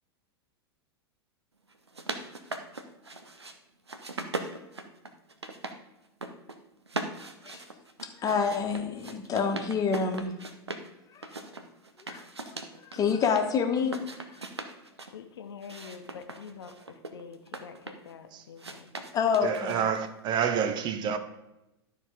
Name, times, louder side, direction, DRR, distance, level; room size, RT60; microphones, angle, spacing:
sound 1, 1.7-3.6 3.9-5.8 6.1-6.6 6.9-10.9 11.2-13.5 13.8-15.1 15.6-18.1 18.6-20.1, right 2 dB, 85° right, 0.8 m, -40 dB
voice 1, 8.2-10.3 11.1-11.3 12.1-12.2 12.5-12.6 12.9-14.0 19.1-19.8, left 6 dB, 25° left, 1.3 m, -27 dB
voice 2, 15.1-18.9, left 6 dB, 70° left, 0.9 m, -46 dB
voice 3, 19.4-21.2, right 7 dB, 35° right, 0.7 m, -28 dB
12.5 x 4.5 x 4.9 m
figure-of-eight pair, 90°, 14 cm